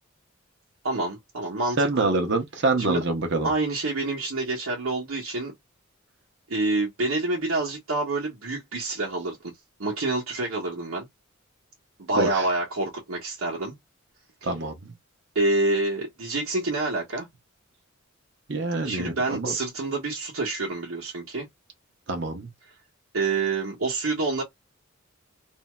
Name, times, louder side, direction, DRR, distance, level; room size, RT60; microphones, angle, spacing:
voice 1, 0.8-2.1 2.8-3.0 3.4-5.5 6.5-9.4 9.8-11.1 12.1-13.7 14.4-14.5 15.3-17.3 18.8-21.5 23.1-24.4, right 2 dB, 85° right, 1.1 m, -27 dB
voice 2, 1.8-3.5 12.2-12.4 14.4-14.9 18.5-19.5 22.1-22.5, right 2 dB, 55° right, 0.9 m, -26 dB
3.0 x 2.7 x 2.2 m
head